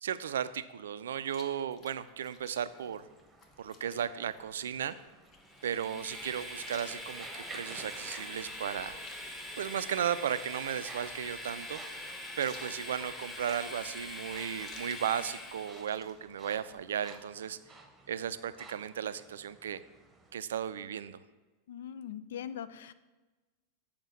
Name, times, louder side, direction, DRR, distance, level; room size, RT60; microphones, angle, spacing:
voice 1, 0.0-3.1 3.6-5.0 5.6-9.0 9.6-11.8 12.4-17.6 18.1-19.8 20.3-21.2, right 9 dB, 65° right, 14 dB, 0.4 m, -35 dB
Chewing mastication, 1.3-17.2, left 4 dB, 30° left, 1.1 m, -58 dB
sound 1, 2.6-20.3, right 3 dB, 15° right, 1.0 m, -55 dB
Train, 5.5-15.9, left 1 dB, 10° left, 1.3 m, -43 dB
voice 2, 21.7-22.9, left 9 dB, 60° left, 13 dB, 0.4 m, -41 dB
7.3 x 5.0 x 7.1 m, 1.2 s
figure-of-eight pair, 90°, 0 cm